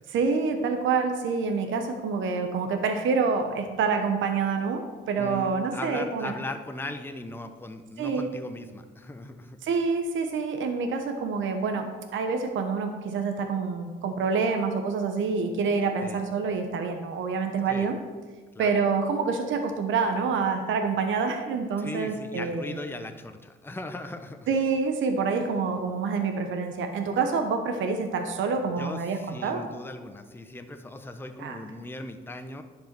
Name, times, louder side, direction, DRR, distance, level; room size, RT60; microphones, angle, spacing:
voice 1, 0.1-6.3 8.0-8.3 9.6-18.0 18.6-22.8 24.5-29.7 31.4-31.6, right 5 dB, 75° right, 5 dB, 1.0 m, -27 dB
voice 2, 5.2-9.6 16.0-16.2 17.6-17.9 18.5-18.7 21.8-24.5 28.8-32.6, left 2 dB, 10° left, 7 dB, 0.8 m, -38 dB
10.0 x 5.2 x 6.0 m, 1.4 s
cardioid pair, 90°, 20 cm